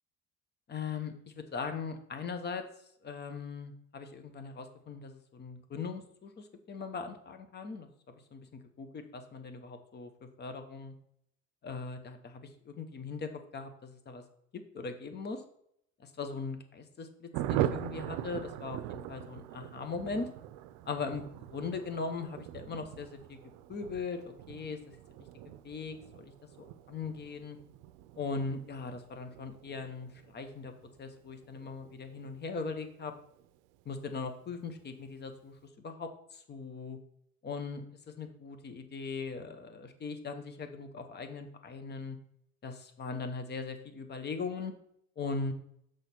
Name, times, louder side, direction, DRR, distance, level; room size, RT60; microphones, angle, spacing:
voice 1, 0.7-2.6 3.0-7.9 8.3-10.1 10.4-10.9 11.6-14.2 14.5-15.4 16.0-20.3 20.9-23.4 23.7-25.0 25.6-26.3 26.9-27.6 28.2-30.7 31.0-33.1 33.8-35.6 35.8-37.0 37.4-37.8 38.2-42.2 42.6-44.7 45.2-45.5, left 4 dB, 35° left, 7 dB, 1.1 m, -39 dB
Thunder, 17.3-33.5 33.7-33.8 34.1-34.3 34.5-34.9, right 12 dB, 85° right, 0.5 m, -41 dB
6.5 x 4.8 x 4.4 m, 0.72 s
cardioid pair, 105°, 29 cm